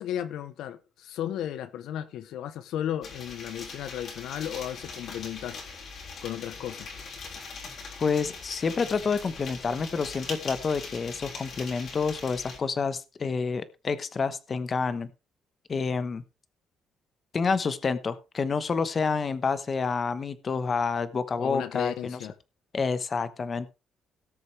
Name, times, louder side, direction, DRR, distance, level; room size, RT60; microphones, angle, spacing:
voice 1, 0.0-5.6 6.2-6.9 21.3-22.3, left 10 dB, 80° left, 0.8 m, -34 dB
sound 1, 3.0-12.6, left 4 dB, 60° left, 3.7 m, -41 dB
voice 2, 8.0-15.1 15.7-16.2 17.3-22.2 22.7-23.7, left 5 dB, 35° left, 1.0 m, -28 dB
18.0 x 6.7 x 3.3 m
cardioid pair, 120°, 0 cm